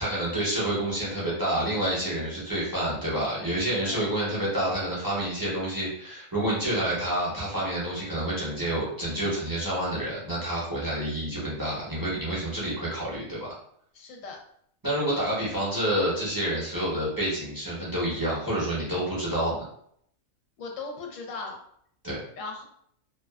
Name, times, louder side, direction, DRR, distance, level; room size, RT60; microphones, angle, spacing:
voice 1, 0.0-13.5 14.8-19.6 22.0-22.2, right 1 dB, 20° right, -8 dB, 0.6 m, -28 dB
voice 2, 13.9-14.4 20.6-21.6 22.4-22.6, left 3 dB, 70° left, 1 dB, 0.9 m, -37 dB
2.5 x 2.3 x 2.2 m, 0.67 s
omnidirectional pair, 1.5 m